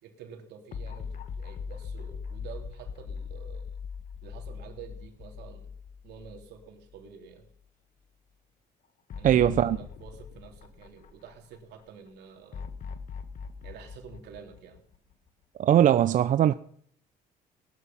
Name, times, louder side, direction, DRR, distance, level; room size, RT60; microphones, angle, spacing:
voice 1, 0.0-3.6 4.2-5.7 6.0-7.5 9.1-12.7 13.6-14.8, right 7 dB, 80° right, 3.4 m, -48 dB
sound 1, 0.7-7.0 7.4-7.5 9.1-11.6 12.5-15.3, left 6 dB, 50° left, 1.7 m, -40 dB
voice 2, 9.2-9.8 15.6-16.5, right 11 dB, 50° right, 0.6 m, -20 dB
18.0 x 12.5 x 5.6 m
cardioid pair, 110°, 17 cm